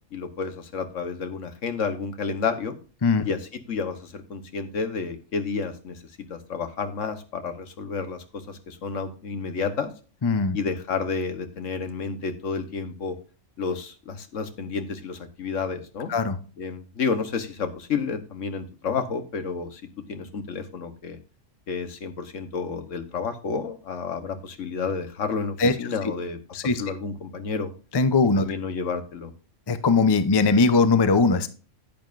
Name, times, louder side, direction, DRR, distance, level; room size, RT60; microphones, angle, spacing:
voice 1, 0.1-2.7 3.2-6.0 6.3-9.9 10.5-13.2 13.6-16.1 16.6-19.8 20.1-21.2 21.7-26.4 26.6-27.7 28.4-29.3, left 5 dB, 75° left, 8 dB, 1.4 m, -30 dB
voice 2, 10.2-10.6 16.1-16.4 25.6-25.7 26.5-26.8 27.9-28.5 29.7-31.5, left 4 dB, 25° left, 11 dB, 0.5 m, -20 dB
10.0 x 9.3 x 2.5 m, 0.37 s
omnidirectional pair, 1.3 m